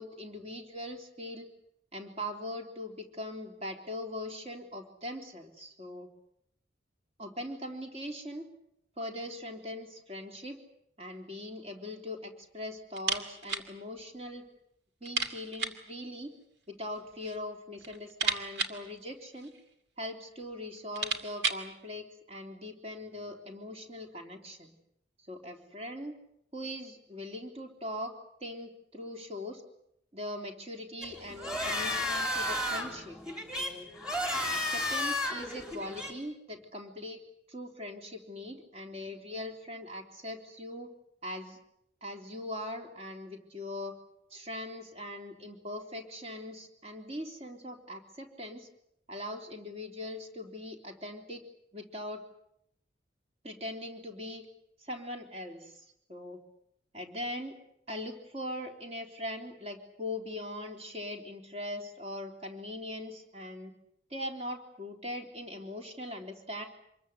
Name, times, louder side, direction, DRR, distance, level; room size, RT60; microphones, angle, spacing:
voice 1, 0.0-1.5 1.9-6.1 7.2-8.5 9.0-10.6 11.0-14.4 15.0-16.3 16.7-19.5 20.0-24.7 25.3-26.2 26.5-28.1 28.4-29.6 30.1-33.2 33.6-33.9 34.5-37.2 37.5-40.9 41.2-41.6 42.0-44.0 44.3-48.7 49.1-51.4 51.7-52.2 53.4-54.5 54.8-56.4 56.9-57.6 57.9-63.7 64.1-66.6, left 1 dB, 35° right, 3 dB, 3.5 m, -41 dB
sound 1, 12.9-13.7 14.0-14.1 14.4-14.5 15.0-15.9 16.8-17.4 17.7-19.7 20.4-20.5 20.8-21.7, right 4 dB, 65° right, 2.4 m, -34 dB
sound 2, 31.0-36.1, left 1 dB, 5° right, 3.6 m, -33 dB
26.5 x 22.0 x 8.2 m, 0.78 s
head